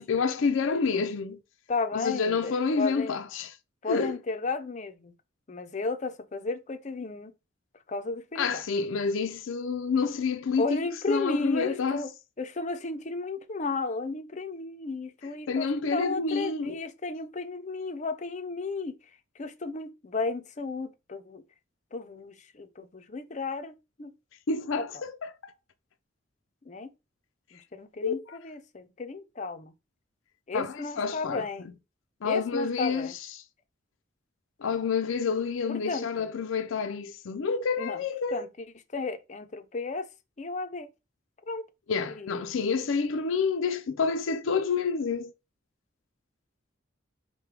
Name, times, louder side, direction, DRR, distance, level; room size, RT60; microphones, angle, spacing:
voice 1, 0.0-1.4 1.9-3.5 3.9-4.1 8.4-10.8 11.1-12.0 15.5-16.8 24.5-25.5 28.0-28.1 30.5-31.4 32.2-33.1 34.6-38.4 41.9-45.3, left 5 dB, 85° left, 0.5 m, -28 dB
voice 2, 1.7-3.2 3.8-5.1 5.5-7.3 7.9-8.6 10.6-12.1 12.4-21.4 21.9-24.1 24.8-25.0 26.6-26.9 27.5-29.7 30.5-31.7 32.2-33.1 35.7-36.3 37.8-38.0 38.3-38.7 38.9-40.1 40.4-40.9 41.5-41.6 42.1-42.5, left 3 dB, 35° left, 0.5 m, -34 dB
4.8 x 2.2 x 4.6 m
head